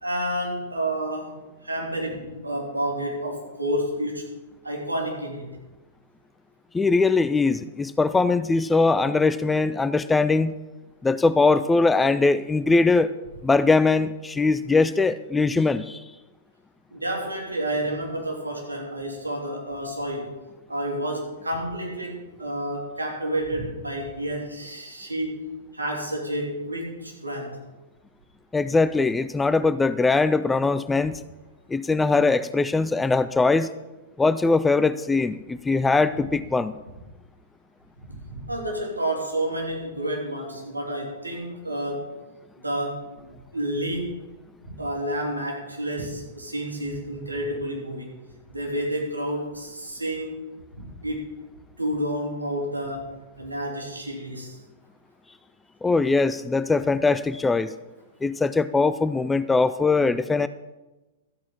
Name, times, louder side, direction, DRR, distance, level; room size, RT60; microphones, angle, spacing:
voice 1, 0.0-4.3 4.6-5.5 16.9-20.3 20.7-27.6 38.1-42.1 42.6-44.2 44.7-48.2 48.5-50.4 50.7-51.3 51.8-54.6, right 1 dB, 80° right, -1 dB, 3.3 m, -30 dB
voice 2, 6.7-10.5 11.0-13.1 13.4-16.0 28.5-31.2 31.7-33.7 34.2-36.7 55.8-57.7 58.2-60.5, left 3 dB, 10° left, 14 dB, 0.4 m, -21 dB
13.0 x 8.6 x 5.9 m, 1.1 s
figure-of-eight pair, 105°, 0 cm